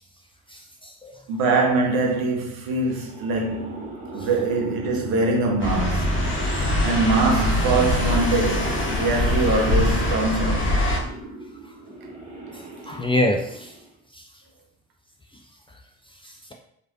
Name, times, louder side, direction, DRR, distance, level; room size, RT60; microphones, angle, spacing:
voice 1, 0.5-1.1 12.5-13.7 14.1-14.2 16.2-16.5, left 1 dB, 15° left, 0.3 m, -26 dB
voice 2, 1.3-10.8, right 3 dB, 70° right, 0.7 m, -23 dB
sound 1, 2.9-14.0, right 2 dB, 20° right, 0.9 m, -39 dB
sound 2, 5.6-11.0, left 1 dB, 30° left, 0.9 m, -23 dB
3.0 x 2.5 x 2.6 m
hypercardioid pair, 40°, 37 cm